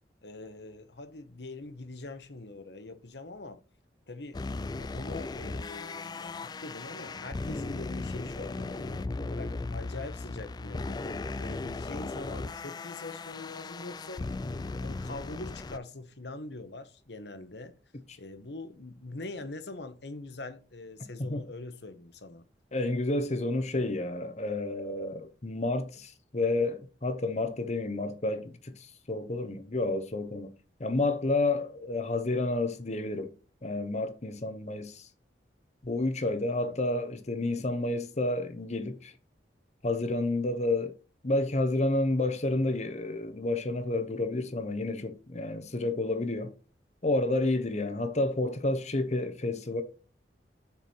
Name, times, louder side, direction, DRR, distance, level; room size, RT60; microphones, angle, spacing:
voice 1, 0.2-3.6 4.1-4.4 4.8-14.3 14.8-17.7 18.2-22.4 36.6-36.8, left 2 dB, 70° left, 1.1 m, -43 dB
sound 1, 4.3-15.8, left 3 dB, 25° left, 0.3 m, -37 dB
voice 2, 22.7-30.5 30.8-33.3 33.6-35.1 35.8-39.1 39.8-41.0 41.2-46.5 47.0-49.8, left 2 dB, 40° left, 0.9 m, -30 dB
6.8 x 4.7 x 4.3 m
head